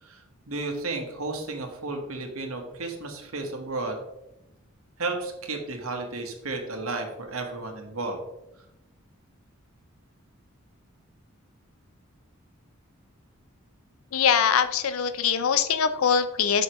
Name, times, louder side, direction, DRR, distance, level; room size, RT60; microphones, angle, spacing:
voice 1, 0.0-4.0 5.0-8.2, right 3 dB, 80° right, 3 dB, 1.3 m, -33 dB
voice 2, 14.1-16.6, left 7 dB, 75° left, 12 dB, 0.5 m, -23 dB
8.0 x 5.7 x 3.0 m, 0.89 s
head